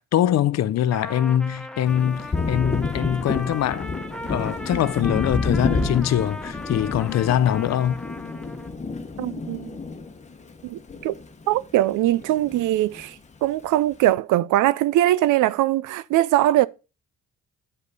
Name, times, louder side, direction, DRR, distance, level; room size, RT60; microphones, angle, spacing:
voice 1, 0.0-4.0 4.3-8.0, left 11 dB, 60° left, 0.6 m, -23 dB
Trumpet, 0.9-8.7, left 1 dB, 5° left, 0.8 m, -38 dB
Thunder, 1.9-11.6 11.9-13.1, left 4 dB, 25° left, 1.1 m, -29 dB
voice 2, 9.2-9.8 10.6-11.1 11.5-13.2 13.4-16.7, right 14 dB, 80° right, 0.5 m, -21 dB
9.5 x 5.2 x 4.0 m
cardioid pair, 90°, 30 cm